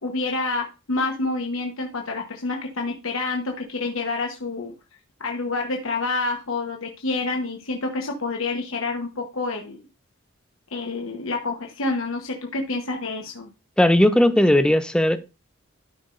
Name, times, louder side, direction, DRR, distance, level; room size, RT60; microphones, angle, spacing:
voice 1, 0.0-4.7 5.2-9.8 10.7-13.5, left 3 dB, 70° left, 1.1 m, -28 dB
voice 2, 13.8-15.2, left 1 dB, 5° left, 0.4 m, -17 dB
12.5 x 5.7 x 2.5 m
head